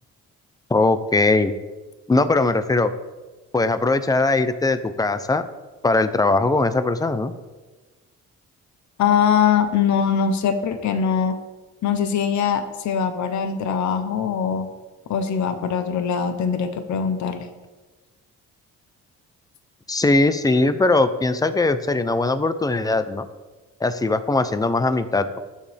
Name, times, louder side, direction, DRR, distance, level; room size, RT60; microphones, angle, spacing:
voice 1, 0.7-1.5 2.1-2.9 3.5-5.4 5.8-7.3 19.9-23.3 23.8-25.4, left 2 dB, 10° left, 11 dB, 0.8 m, -20 dB
voice 2, 9.0-11.4 11.8-14.7 15.1-17.5, left 7 dB, 70° left, 8 dB, 1.0 m, -22 dB
19.0 x 7.6 x 3.6 m, 1.2 s
cardioid pair, 90°, 30 cm